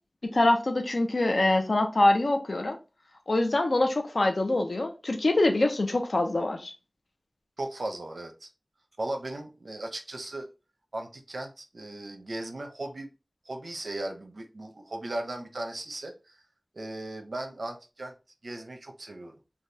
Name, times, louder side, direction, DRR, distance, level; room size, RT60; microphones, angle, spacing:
voice 1, 0.2-2.8 3.3-6.7, left 2 dB, 90° left, 0.6 m, -24 dB
voice 2, 7.6-8.5 9.0-10.5 10.9-13.1 13.4-16.4 16.7-18.1 18.4-19.4, right 1 dB, 90° right, 0.6 m, -37 dB
3.3 x 2.3 x 2.7 m
wide cardioid pair, 55°, 0 cm